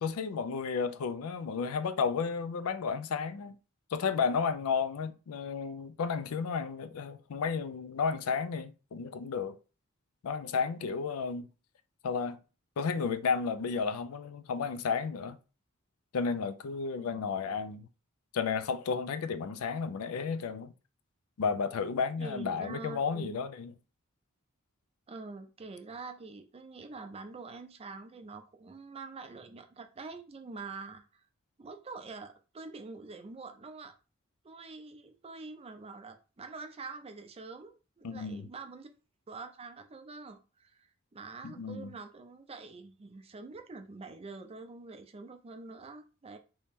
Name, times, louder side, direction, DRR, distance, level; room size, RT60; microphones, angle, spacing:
voice 1, 0.0-3.6 3.9-9.6 10.2-11.5 12.0-12.4 12.8-15.4 16.1-17.9 18.3-20.7 21.4-23.7 38.0-38.5 41.4-41.9, left 5 dB, 85° left, 0.4 m, -32 dB
voice 2, 17.0-17.3 22.2-23.4 25.1-31.2 31.6-33.9 34.4-38.9 39.3-46.4, right 4 dB, 30° right, 0.4 m, -46 dB
3.0 x 2.8 x 3.5 m
head